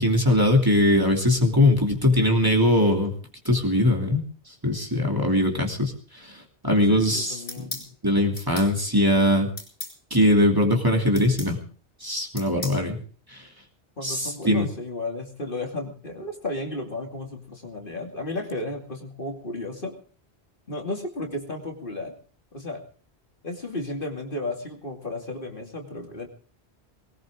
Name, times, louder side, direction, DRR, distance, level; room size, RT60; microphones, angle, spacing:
voice 1, 0.0-3.1 3.4-4.2 4.6-7.7 8.0-9.5 10.1-11.6 12.0-13.0 13.3-13.5 14.0-14.7, left 1 dB, 20° right, 1 dB, 2.8 m, -21 dB
voice 2, 6.7-7.8 14.0-20.0 20.7-22.2 22.5-22.8 23.4-26.3, left 2 dB, 50° left, 2 dB, 2.7 m, -33 dB
sound 1, 7.5-7.9 8.4-8.7 9.6-10.0 11.1-11.5 12.4-12.8, left 2 dB, 75° left, 4.6 m, -36 dB
20.0 x 18.5 x 3.6 m, 0.41 s
omnidirectional pair, 1.1 m